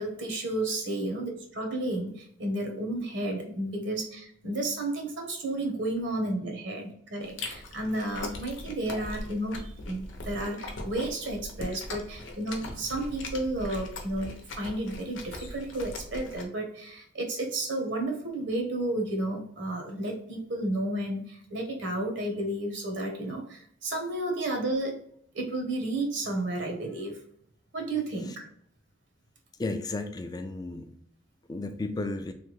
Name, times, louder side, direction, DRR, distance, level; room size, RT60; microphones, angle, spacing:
voice 1, 0.0-25.0 25.3-27.2 27.7-28.5, right 1 dB, 70° right, 2 dB, 0.9 m, -32 dB
Chewing mastication, 7.2-16.4, left 2 dB, 90° left, 0.8 m, -40 dB
voice 2, 29.6-30.9 31.5-32.3, left 2 dB, 20° left, 7 dB, 0.3 m, -33 dB
3.3 x 2.2 x 3.0 m, 0.64 s
head